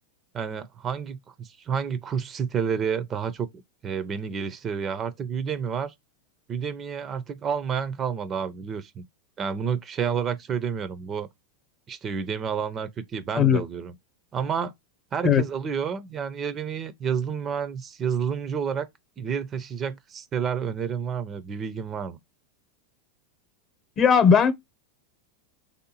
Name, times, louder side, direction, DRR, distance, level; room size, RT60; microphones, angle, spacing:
voice 1, 0.3-3.5 3.8-5.9 6.5-9.0 9.4-11.3 11.9-13.9 14.3-14.7 15.1-18.9 19.2-22.2, right 7 dB, 30° right, 0.5 m, -30 dB
voice 2, 24.0-24.5, left 7 dB, 35° left, 0.8 m, -18 dB
3.4 x 2.7 x 2.8 m
hypercardioid pair, 100°, 0 cm